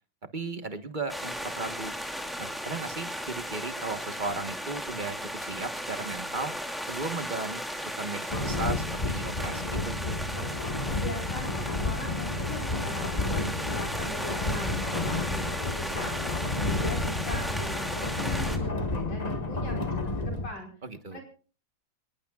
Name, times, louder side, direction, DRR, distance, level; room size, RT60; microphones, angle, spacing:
voice 1, 0.3-1.9 2.4-6.5 6.9-10.0 20.8-21.2, right 3 dB, 30° right, 9 dB, 1.1 m, -36 dB
sound 1, 1.1-18.6, equal, ahead, 2.3 m, -36 dB
sound 2, 8.3-20.5, left 2 dB, 25° left, 1.2 m, -31 dB
voice 2, 10.9-16.2 16.6-20.7 21.1-21.2, left 1 dB, 80° left, 1 dB, 5.9 m, -40 dB
25.5 x 20.0 x 2.4 m, 0.37 s
omnidirectional pair, 2.1 m